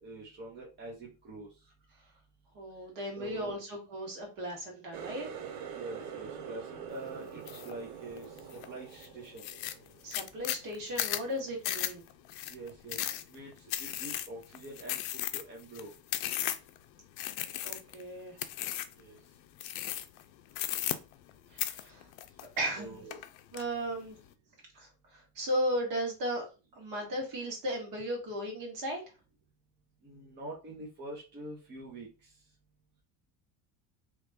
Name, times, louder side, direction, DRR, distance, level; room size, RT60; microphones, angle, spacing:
voice 1, 0.0-1.5 3.1-3.5 5.7-9.4 12.4-15.0 15.3-15.9 19.0-19.2 22.8-23.2 30.0-32.3, right 2 dB, 25° right, -4 dB, 0.9 m, -45 dB
voice 2, 2.5-5.3 10.0-12.1 17.6-18.4 21.5-22.1 22.6-23.0 23.5-24.2 24.7-26.5 26.7-29.0, equal, 50° right, 0 dB, 1.8 m, -36 dB
Water tap faucet, 4.9-10.4 10.8-11.3 11.7-12.0 12.8-12.9, right 8 dB, 85° right, 0.8 m, -45 dB
sound 1, 7.5-7.7 8.2-8.7 9.0-9.1 9.4-16.8 17.2-18.0 18.4-19.0 19.6-20.2 20.5-21.3 21.6-22.8 23.1-23.6, left 13 dB, 75° left, 0.5 m, -35 dB
3.0 x 2.4 x 3.4 m, 0.31 s
cardioid pair, 145°, 41 cm